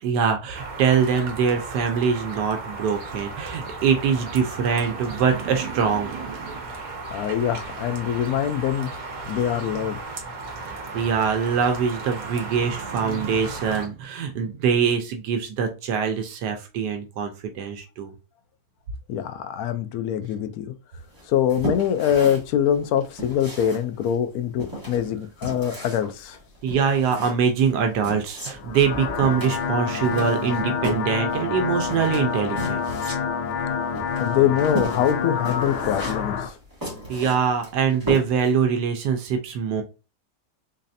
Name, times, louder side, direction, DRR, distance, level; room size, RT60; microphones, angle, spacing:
voice 1, 0.0-6.7 10.9-18.1 26.6-32.9 37.1-39.8, right 6 dB, 80° right, 1.2 m, -23 dB
sound 1, 0.5-13.9, right 3 dB, 60° right, 1.3 m, -35 dB
voice 2, 7.1-8.9 9.3-10.0 19.1-20.7 21.3-26.4 34.2-36.5, left 9 dB, 70° left, 0.9 m, -24 dB
sound 2, 21.1-38.6, equal, 15° right, 1.3 m, -35 dB
sound 3, 28.5-36.5, left 6 dB, 90° left, 1.3 m, -28 dB
4.0 x 3.2 x 2.6 m
omnidirectional pair, 1.8 m